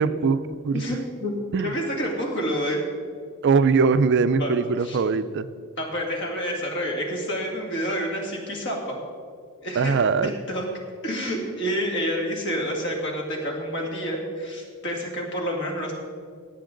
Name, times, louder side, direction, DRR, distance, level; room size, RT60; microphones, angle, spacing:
voice 1, 0.0-0.8 1.5-1.7 3.4-5.5 9.8-10.3, right 5 dB, 55° right, 13 dB, 0.4 m, -21 dB
voice 2, 0.7-1.3 1.6-2.8 4.4-5.0 5.8-9.0 9.6-9.9 10.2-10.7 11.0-15.9, equal, 55° left, 0 dB, 2.3 m, -28 dB
18.0 x 8.0 x 3.8 m, 2.2 s
head